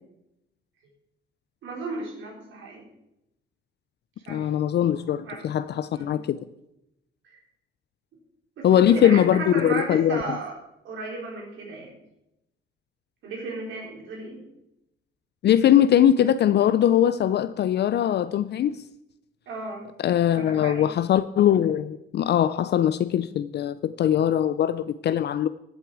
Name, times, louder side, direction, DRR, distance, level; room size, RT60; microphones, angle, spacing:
voice 1, 1.6-2.9 4.2-4.5 5.2-5.4 5.9-6.2 7.2-7.4 8.6-10.5 10.8-12.0 13.2-14.4 19.5-19.9 20.4-20.9, right 3 dB, 75° right, 4.1 m, -34 dB
voice 2, 4.3-6.4 8.6-10.2 15.4-18.8 20.0-25.5, left 10 dB, 60° left, 0.5 m, -21 dB
14.5 x 8.1 x 4.8 m
cardioid pair, 90°, 20 cm